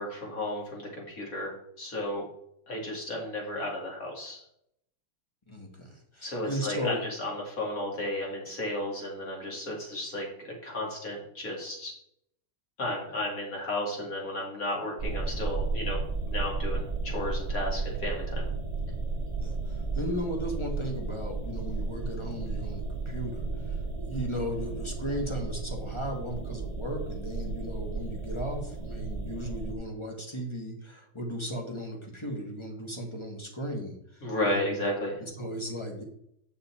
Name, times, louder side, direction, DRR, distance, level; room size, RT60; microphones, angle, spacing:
voice 1, 0.0-2.2 2.7-4.4 6.2-11.9 12.8-16.0 16.3-18.5 34.2-35.2, left 1 dB, 40° left, -1 dB, 2.7 m, -33 dB
voice 2, 5.5-7.0 19.4-23.8 24.1-34.8 35.2-36.0, equal, 15° left, 1 dB, 1.2 m, -36 dB
sound 1, 15.0-29.7, right 3 dB, 30° right, 0.6 m, -33 dB
8.5 x 5.8 x 4.3 m, 0.73 s
omnidirectional pair, 2.2 m